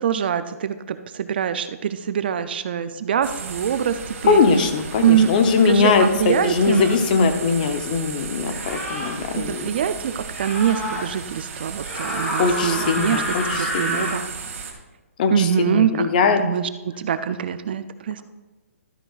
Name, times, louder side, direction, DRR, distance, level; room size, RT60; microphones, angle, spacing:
voice 1, 0.0-4.7 5.0-5.3 5.7-6.8 9.3-14.2 15.3-16.1 16.4-16.7 17.0-18.2, right 8 dB, 40° right, 12 dB, 0.4 m, -24 dB
sound 1, 3.2-14.7, right 5 dB, 55° right, 1.8 m, -35 dB
voice 2, 4.2-9.7 12.4-14.0 15.2-16.4, left 5 dB, 35° left, 7 dB, 0.7 m, -20 dB
sound 2, 5.2-5.3 6.5-7.0 8.4-9.1 10.3-11.0 11.8-14.2, equal, 10° left, 1.7 m, -29 dB
12.5 x 9.8 x 2.4 m, 1.1 s
hypercardioid pair, 160°, 8 cm